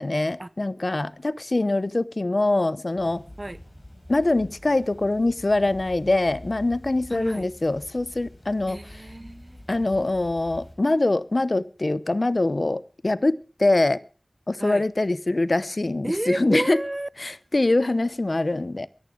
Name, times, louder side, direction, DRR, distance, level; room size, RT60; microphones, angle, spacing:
voice 1, 0.0-3.2 4.1-8.8 9.7-14.0 14.5-16.8 17.2-18.9, left 2 dB, 60° left, 0.6 m, -23 dB
sound 1, 2.9-10.7, left 1 dB, 35° left, 6.7 m, -45 dB
voice 2, 7.1-7.5 8.7-9.6 14.6-14.8 16.0-17.1, right 1 dB, 40° right, 0.6 m, -31 dB
23.5 x 10.5 x 3.7 m
wide cardioid pair, 45°, 0 cm